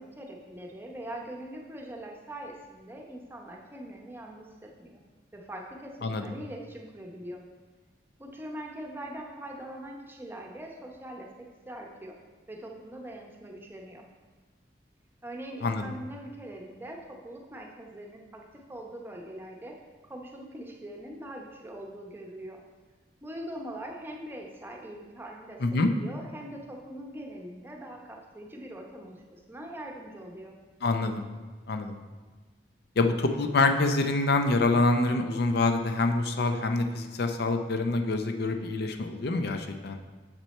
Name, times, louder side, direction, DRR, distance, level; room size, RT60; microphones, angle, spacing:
voice 1, 0.0-5.0 5.3-7.4 8.2-11.3 11.7-12.2 12.5-14.1 15.2-19.7 20.0-22.6 23.2-30.6, right 1 dB, 15° right, 0 dB, 0.8 m, -42 dB
voice 2, 15.6-15.9 25.6-25.9 30.8-31.2 31.7-32.0 33.0-40.0, left 3 dB, 65° left, 6 dB, 0.5 m, -26 dB
6.6 x 6.1 x 4.3 m, 1.3 s
head